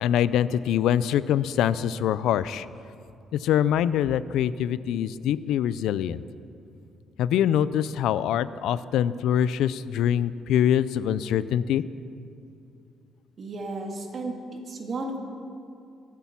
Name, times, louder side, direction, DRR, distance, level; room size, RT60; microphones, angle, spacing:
voice 1, 0.0-2.7 3.4-6.2 7.2-11.8, left 10 dB, 85° left, 16 dB, 0.4 m, -24 dB
voice 2, 13.4-14.4 14.7-15.2, right 2 dB, 45° right, 2 dB, 2.2 m, -33 dB
23.5 x 8.4 x 5.9 m, 2.6 s
cardioid pair, 130°, 0 cm